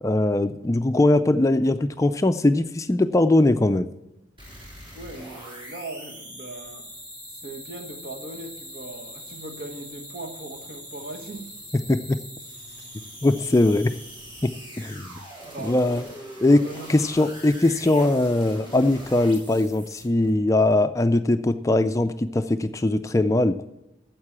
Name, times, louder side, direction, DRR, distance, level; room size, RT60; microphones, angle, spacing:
voice 1, 0.0-3.9 11.9-12.2 13.2-14.0 14.4-14.5 14.8-15.2 15.6-16.0 16.4-16.6 16.9-23.6, left 2 dB, 15° left, 0.3 m, -21 dB
sound 1, 4.4-20.3, equal, 25° right, 3.7 m, -42 dB
voice 2, 4.9-6.9 7.4-11.5 15.4-16.1 16.5-16.9, right 2 dB, 55° right, 1.4 m, -39 dB
9.5 x 7.5 x 7.3 m
head